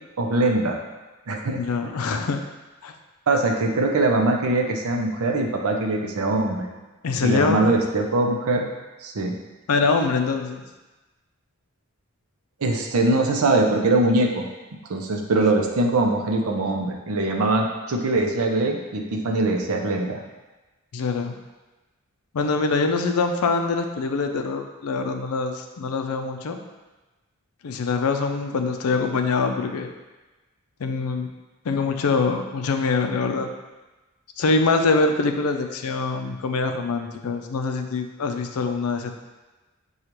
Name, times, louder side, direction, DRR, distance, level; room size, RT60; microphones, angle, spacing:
voice 1, 0.2-0.8 1.3-1.9 3.3-6.7 7.2-8.7 9.0-9.4 12.6-14.4 14.9-20.2, right 2 dB, 75° right, 2 dB, 0.6 m, -22 dB
voice 2, 1.5-2.4 2.8-2.9 7.0-7.6 9.7-10.6 20.9-21.4 22.3-26.6 27.6-29.9 30.8-31.3 31.6-33.5 34.4-39.1, left 4 dB, 80° left, 5 dB, 0.4 m, -24 dB
6.5 x 2.4 x 3.0 m, 1.1 s
head